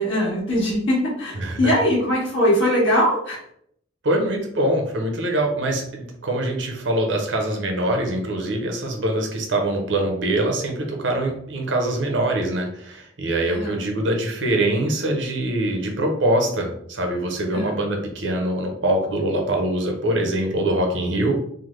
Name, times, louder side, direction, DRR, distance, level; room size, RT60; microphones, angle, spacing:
voice 1, 0.0-3.4 13.5-13.8 17.5-17.7, equal, 90° left, -6 dB, 1.2 m, -21 dB
voice 2, 1.4-1.7 4.0-21.3, right 1 dB, 75° right, 2 dB, 0.7 m, -23 dB
3.4 x 2.0 x 3.1 m, 0.68 s
head